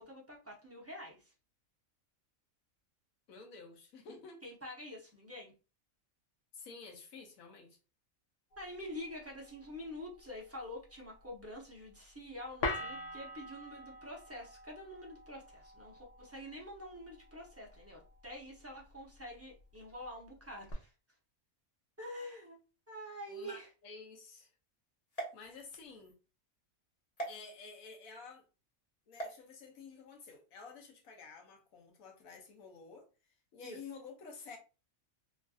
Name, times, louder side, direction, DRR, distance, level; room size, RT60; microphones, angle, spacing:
voice 1, 0.0-1.3 4.4-5.5 8.6-20.9 22.0-22.6 22.9-23.7 33.6-33.8, left 1 dB, 20° right, 0.4 m, -47 dB
voice 2, 3.3-4.4 6.5-7.8 23.3-24.5 25.3-26.2 27.3-28.4 29.1-33.1 33.5-34.6, left 4 dB, 85° left, 1.2 m, -51 dB
sound 1, 8.5-20.7, left 2 dB, 65° left, 1.0 m, -46 dB
sound 2, 25.1-26.1 27.2-27.3 29.1-29.4, right 3 dB, 40° left, 0.6 m, -42 dB
3.1 x 2.5 x 2.3 m
omnidirectional pair, 1.4 m